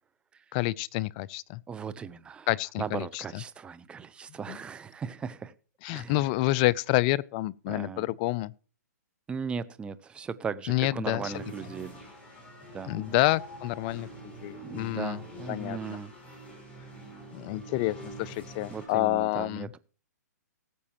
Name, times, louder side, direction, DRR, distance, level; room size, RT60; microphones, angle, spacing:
voice 1, 0.5-1.6 2.5-3.4 4.5-4.6 5.8-8.5 10.7-11.3 12.9-14.1 14.4-15.2 15.5-16.0 17.3-19.7, left 18 dB, 30° left, 0.5 m, -28 dB
voice 2, 1.7-2.5 2.8-5.5 5.9-6.2 7.7-8.1 9.3-12.0 12.7-13.2 14.6-16.1 18.7-19.8, right 6 dB, 10° right, 0.7 m, -37 dB
sound 1, 11.3-18.9, right 1 dB, 15° left, 5.4 m, -45 dB
19.0 x 8.3 x 3.0 m
hypercardioid pair, 140°, 9 cm